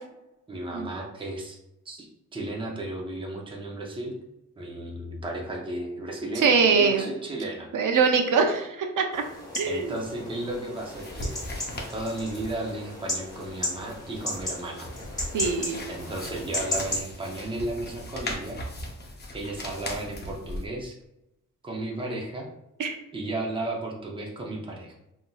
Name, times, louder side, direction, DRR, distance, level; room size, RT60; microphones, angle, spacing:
voice 1, 0.5-1.6 1.9-4.2 4.6-7.7 9.7-11.3 11.9-14.9 15.9-18.6 19.3-20.9 21.6-22.5 23.1-24.9, right 2 dB, 15° right, -1 dB, 0.6 m, -34 dB
voice 2, 6.4-7.0 7.7-9.2 9.6-9.9 15.3-15.8 22.8-23.0, right 5 dB, 80° right, 4 dB, 0.6 m, -23 dB
sound 1, 9.1-17.0, left 1 dB, 10° left, 1.1 m, -35 dB
sound 2, 10.8-20.7, left 1 dB, 30° left, 0.6 m, -39 dB
5.6 x 2.7 x 2.3 m, 0.90 s
wide cardioid pair, 180°, 31 cm